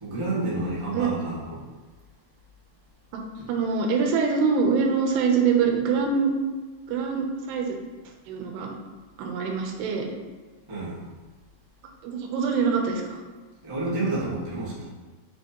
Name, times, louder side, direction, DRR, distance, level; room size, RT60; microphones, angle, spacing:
voice 1, 0.0-1.6 10.7-11.0 13.6-14.8, right 2 dB, 45° right, -9 dB, 0.4 m, -29 dB
voice 2, 3.5-6.3 6.9-7.8 8.3-8.7 9.2-10.1 12.0-13.2, right 5 dB, 80° right, 2 dB, 2.9 m, -24 dB
8.0 x 6.2 x 3.1 m, 1.3 s
omnidirectional pair, 4.9 m